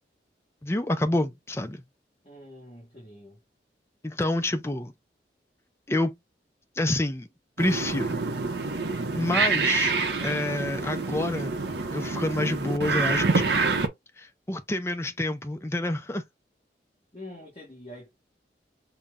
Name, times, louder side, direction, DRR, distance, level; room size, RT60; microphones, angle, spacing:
voice 1, 0.6-1.8 4.0-4.9 5.9-6.1 6.8-7.3 7.6-8.2 9.1-9.9 10.2-11.6 11.9-13.7 14.2-16.2, left 1 dB, 15° left, 0.5 m, -28 dB
voice 2, 2.2-3.4 17.1-18.1, left 1 dB, 35° left, 1.5 m, -45 dB
sound 1, 7.6-13.9, right 3 dB, 75° right, 0.8 m, -27 dB
5.7 x 2.2 x 3.7 m
head